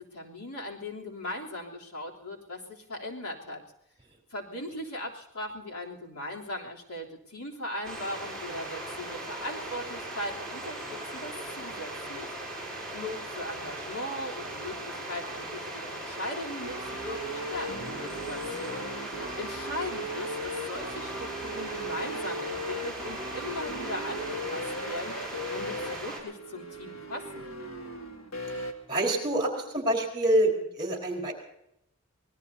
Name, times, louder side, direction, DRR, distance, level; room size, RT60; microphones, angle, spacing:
voice 1, 0.0-3.6 4.3-12.3 12.9-18.9 19.4-25.2 25.5-27.5, left 1 dB, 85° left, -1 dB, 3.4 m, -39 dB
sound 1, 7.8-26.2, right 1 dB, 5° left, 5.8 m, -39 dB
sound 2, 16.6-28.7, equal, 65° left, 2.2 m, -37 dB
voice 2, 28.9-31.3, right 1 dB, 20° right, 1 dB, 4.4 m, -26 dB
25.5 x 20.0 x 2.8 m, 0.80 s
head